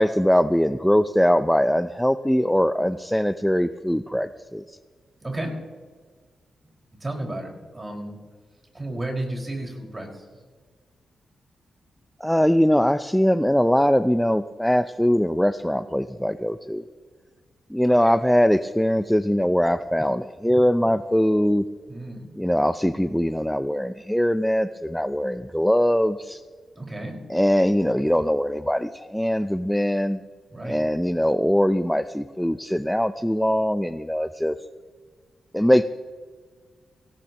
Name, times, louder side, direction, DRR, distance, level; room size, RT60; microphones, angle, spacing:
voice 1, 0.0-4.8 12.2-16.8 17.7-21.6 22.4-26.4 27.3-30.2 30.6-34.6 35.5-35.8, equal, 5° left, 11 dB, 0.5 m, -21 dB
voice 2, 5.2-5.5 7.0-8.2 8.7-10.3 21.9-22.3 26.8-27.2 30.5-30.8, right 1 dB, 30° right, 0 dB, 5.2 m, -32 dB
18.5 x 17.0 x 3.0 m, 1.5 s
supercardioid pair, 50°, 0 cm